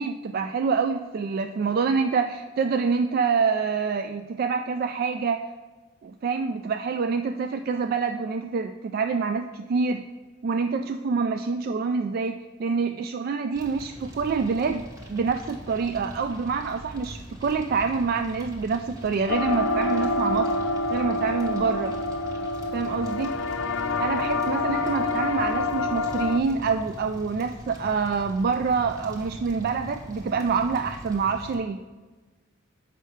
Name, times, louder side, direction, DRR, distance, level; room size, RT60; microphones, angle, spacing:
voice 1, 0.0-5.5 6.0-10.0 10.4-20.5 20.9-22.0 22.7-23.3 24.0-31.8, right 5 dB, 50° right, 7 dB, 0.3 m, -26 dB
Fire, 13.5-31.5, equal, 15° right, 1.2 m, -42 dB
sound 1, 19.3-26.4, left 3 dB, 70° left, 0.5 m, -27 dB
7.3 x 5.4 x 4.9 m, 1.3 s
head